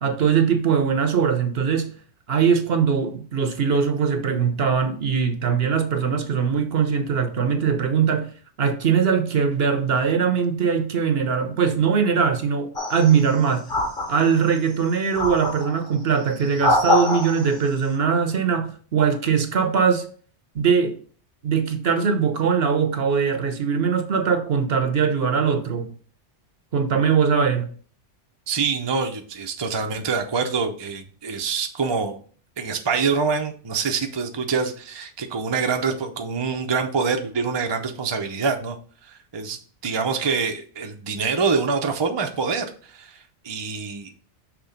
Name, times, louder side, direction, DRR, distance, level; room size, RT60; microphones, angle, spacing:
voice 1, 0.0-1.9 2.3-8.3 8.6-13.7 14.1-20.1 20.5-21.0 21.4-25.9 26.7-27.7, right 6 dB, 60° right, 1.0 m, -21 dB
sound 1, 12.8-13.3 13.7-14.6 15.2-15.8 16.4-17.6, left 2 dB, 45° left, 1.8 m, -24 dB
voice 2, 28.5-32.2 32.6-38.8 39.0-44.1, right 5 dB, 30° right, 0.6 m, -25 dB
6.0 x 3.2 x 5.0 m
omnidirectional pair, 1.2 m